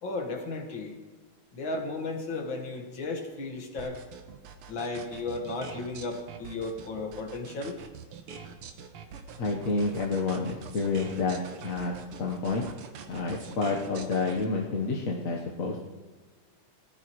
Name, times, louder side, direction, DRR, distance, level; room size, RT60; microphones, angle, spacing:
voice 1, 0.0-1.0 1.5-4.0 4.7-7.8, left 3 dB, 65° left, 2 dB, 2.3 m, -34 dB
sound 1, 3.8-14.4, right 6 dB, 90° right, 1.9 m, -44 dB
voice 2, 9.4-12.6 13.1-15.8, left 3 dB, 45° left, -1 dB, 1.3 m, -29 dB
19.5 x 14.0 x 3.1 m, 1.3 s
omnidirectional pair, 2.4 m